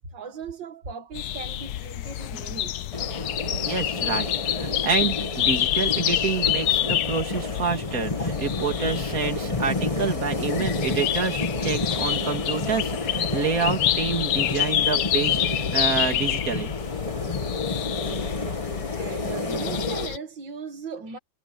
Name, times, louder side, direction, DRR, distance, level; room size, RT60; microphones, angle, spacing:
voice 1, 0.0-2.9 17.9-18.5 19.0-21.2, right 5 dB, 75° right, 2.6 m, -38 dB
sound 1, 1.1-20.2, left 12 dB, 65° left, 1.1 m, -28 dB
sound 2, 2.9-20.1, left 2 dB, 20° left, 2.0 m, -30 dB
voice 2, 3.6-16.7, right 5 dB, 50° right, 3.2 m, -28 dB
omnidirectional pair, 2.0 m